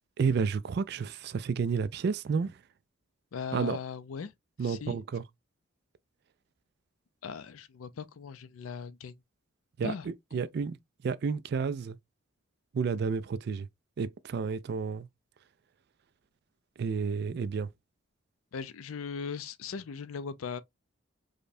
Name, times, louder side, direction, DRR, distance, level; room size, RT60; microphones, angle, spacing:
voice 1, 0.2-2.5 3.5-3.8 4.6-5.2 9.8-10.8 11.0-12.0 12.7-13.7 14.0-15.1 16.8-17.7, right 5 dB, 50° right, 0.3 m, -31 dB
voice 2, 3.3-4.3 4.6-5.0 7.2-9.1 9.8-10.1 18.5-20.6, left 6 dB, 85° left, 0.4 m, -38 dB
5.0 x 2.2 x 2.5 m
head